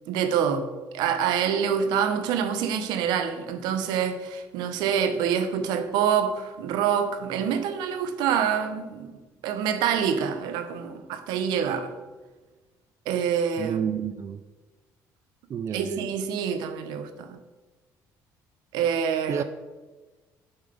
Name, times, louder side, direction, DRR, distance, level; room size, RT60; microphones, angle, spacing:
voice 1, 0.1-0.7 0.9-9.1 9.4-11.9 13.1-13.8 15.7-17.4 18.7-19.4, right 8 dB, 85° right, 0.9 m, -26 dB
voice 2, 13.6-14.4 15.5-16.1 19.3-19.4, right 8 dB, 40° right, 0.4 m, -30 dB
7.0 x 5.8 x 5.1 m
cardioid pair, 115°, 7 cm